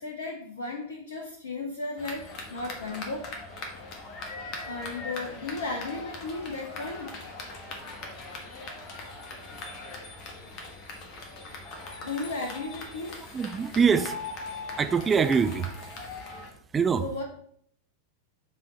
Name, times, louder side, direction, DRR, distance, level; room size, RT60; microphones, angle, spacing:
voice 1, 0.0-3.3 4.6-7.1 12.0-13.2 17.0-17.2, left 3 dB, 70° left, 1 dB, 0.8 m, -35 dB
sound 1, 2.0-16.5, left 2 dB, 40° left, 1.4 m, -40 dB
voice 2, 13.3-14.2 14.8-15.7 16.7-17.0, right 6 dB, 20° right, 10 dB, 0.5 m, -23 dB
7.4 x 3.9 x 4.0 m, 0.64 s
figure-of-eight pair, 90°, 0 cm